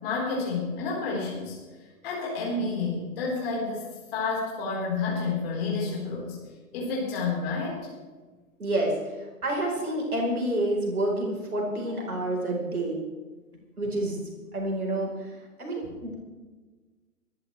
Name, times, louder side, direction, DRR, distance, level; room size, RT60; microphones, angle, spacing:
voice 1, 0.0-1.6 2.0-3.8 4.1-6.4 6.7-7.8 15.8-15.9, left 4 dB, 40° left, -5 dB, 4.7 m, -29 dB
voice 2, 8.6-9.0 9.4-13.0 13.8-14.2 14.5-16.1, right 1 dB, 70° right, -1 dB, 4.6 m, -28 dB
24.5 x 11.5 x 3.4 m, 1.3 s
figure-of-eight pair, 125°, 46 cm